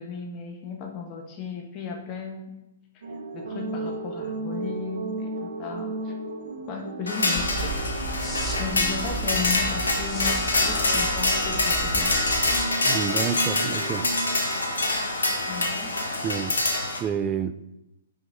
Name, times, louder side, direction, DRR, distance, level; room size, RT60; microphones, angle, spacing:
voice 1, 0.0-2.5 3.3-6.2 6.7-7.8 8.6-12.2 15.5-15.9, left 5 dB, 30° left, 2 dB, 1.3 m, -35 dB
sound 1, 3.0-14.4, right 3 dB, 60° right, 0.8 m, -35 dB
sound 2, 7.1-17.0, left 2 dB, 70° left, 1.2 m, -25 dB
sound 3, 7.3-12.7, right 2 dB, 10° left, 1.2 m, -34 dB
voice 2, 12.8-14.1 16.2-16.5 17.0-17.5, right 7 dB, 20° right, 12 dB, 0.4 m, -29 dB
5.6 x 5.3 x 4.9 m, 0.95 s
figure-of-eight pair, 115°, 0 cm